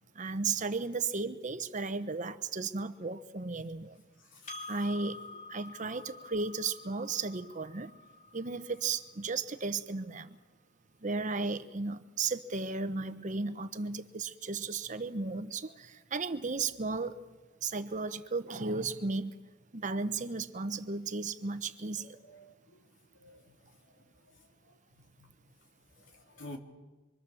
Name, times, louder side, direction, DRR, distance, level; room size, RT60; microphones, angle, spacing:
voice 1, 0.1-4.0 4.7-5.2 5.5-7.9 8.3-10.4 11.0-17.2 17.6-19.4 19.7-22.2, right 4 dB, 40° right, 1.0 m, -35 dB
Percussion, 4.5-9.3, left 3 dB, 40° left, 2.9 m, -48 dB
voice 2, 22.2-22.8 23.2-23.5 24.9-25.3 26.0-26.6, left 1 dB, 70° left, 3.3 m, -50 dB
25.5 x 24.0 x 7.1 m
head